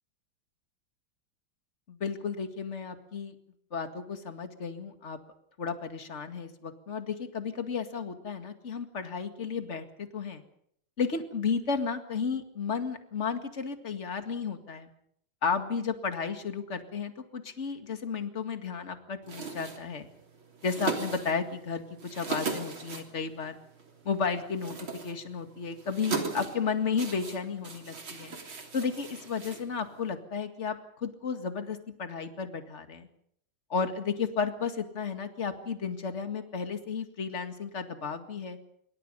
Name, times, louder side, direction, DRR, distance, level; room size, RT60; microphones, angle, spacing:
voice 1, 1.9-3.3 3.7-5.2 5.6-10.4 11.0-14.9 15.4-20.1 20.6-23.6 24.0-28.4 28.7-33.1 33.7-38.6, left 5 dB, 35° left, 7 dB, 2.2 m, -33 dB
sound 1, 19.2-30.1, right 4 dB, 70° right, 4.2 m, -39 dB
26.5 x 24.0 x 5.5 m, 0.69 s
omnidirectional pair, 2.3 m